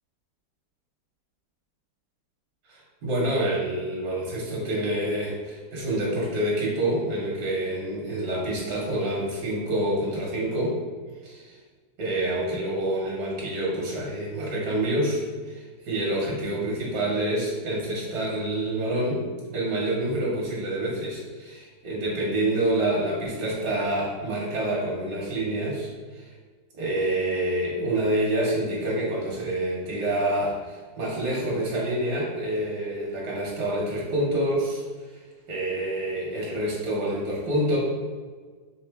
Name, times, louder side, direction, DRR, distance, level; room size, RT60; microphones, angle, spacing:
voice 1, 2.7-10.8 11.2-11.6 12.0-19.2 19.5-26.3 26.7-34.8 35.1-35.2 35.5-37.8, right 1 dB, 65° right, -4 dB, 1.3 m, -27 dB
3.7 x 3.3 x 3.3 m, 1.5 s
omnidirectional pair, 2.0 m